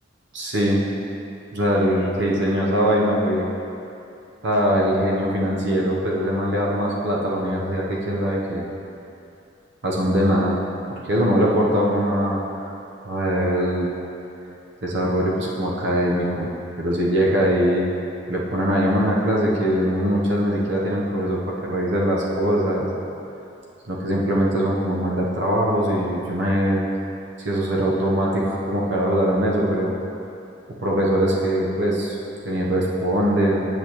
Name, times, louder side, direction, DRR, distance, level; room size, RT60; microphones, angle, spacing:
voice 1, 0.3-0.8 1.5-3.4 4.4-8.6 9.8-10.6 11.1-12.8 13.0-13.9 14.8-16.5 16.8-17.8 18.3-22.9 23.9-26.8 27.4-29.9 30.8-32.2 32.4-33.7, equal, 65° right, -4 dB, 0.9 m, -22 dB
8.3 x 7.0 x 3.0 m, 2.7 s
head